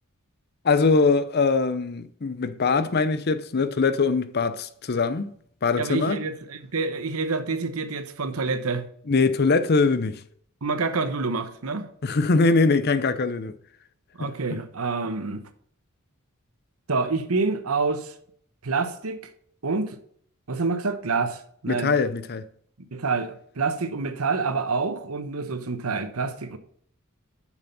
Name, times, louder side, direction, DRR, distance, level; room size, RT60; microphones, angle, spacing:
voice 1, 0.6-5.3 5.6-6.2 9.1-10.2 12.0-13.5 14.2-14.3 21.7-22.4, left 4 dB, 50° left, 0.6 m, -22 dB
voice 2, 5.8-8.9 10.6-11.9 14.2-15.4 16.9-18.1 18.6-19.2 19.6-20.0 20.5-21.4 21.6-21.9 22.9-26.6, right 4 dB, 80° right, 1.0 m, -27 dB
7.0 x 6.4 x 5.5 m
head